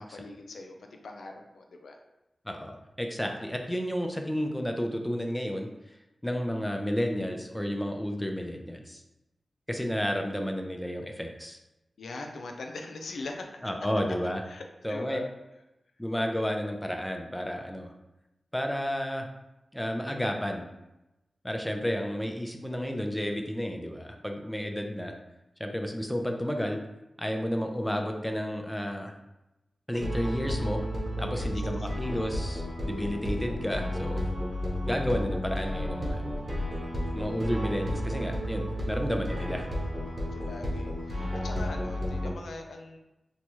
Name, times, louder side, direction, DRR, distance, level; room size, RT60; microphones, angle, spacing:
voice 1, 0.0-2.0 12.0-13.5 14.5-15.3 31.3-31.5 40.3-43.0, left 3 dB, 90° left, 3 dB, 0.4 m, -41 dB
voice 2, 2.5-5.7 6.2-9.0 9.7-11.6 13.6-14.4 14.8-15.2 16.0-17.9 18.5-19.3 19.7-20.6 21.4-25.1 25.6-26.8 27.2-29.1 29.9-30.8 31.2-34.2 34.8-36.2 37.1-39.7, equal, 10° left, 3 dB, 0.5 m, -31 dB
sound 1, 29.9-42.3, equal, 45° right, 1.0 m, -32 dB
3.9 x 2.3 x 3.0 m, 0.96 s
cardioid pair, 45°, 0 cm